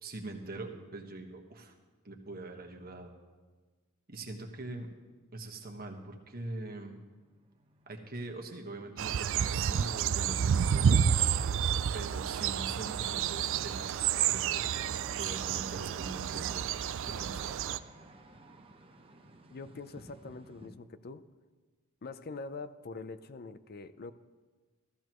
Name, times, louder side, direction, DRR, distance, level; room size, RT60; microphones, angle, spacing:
voice 1, 0.0-1.7 2.0-3.1 4.1-4.9 5.3-7.0 7.9-11.0 11.9-14.6 15.1-17.6, right 2 dB, 45° right, 3 dB, 1.4 m, -43 dB
sound 1, 7.2-20.7, right 2 dB, 25° right, 0.9 m, -53 dB
sound 2, 9.0-17.8, right 8 dB, 65° right, 0.4 m, -30 dB
voice 2, 19.5-21.3 22.0-24.1, left 3 dB, 45° left, 13 dB, 0.5 m, -44 dB
15.0 x 14.5 x 3.0 m, 1.3 s
head